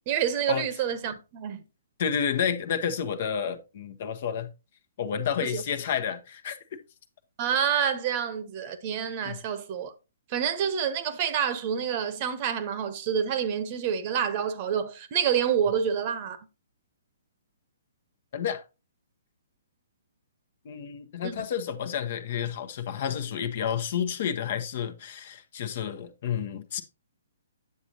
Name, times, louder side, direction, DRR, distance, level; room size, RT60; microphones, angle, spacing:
voice 1, 0.0-1.6 5.4-5.6 7.4-9.9 10.3-16.5 21.2-21.4, right 8 dB, 35° right, 1.1 m, -28 dB
voice 2, 2.0-4.5 5.0-6.6 9.2-9.4 18.3-18.6 20.6-26.8, left 8 dB, 45° left, 1.0 m, -30 dB
9.5 x 7.0 x 2.8 m
figure-of-eight pair, 125°, 0 cm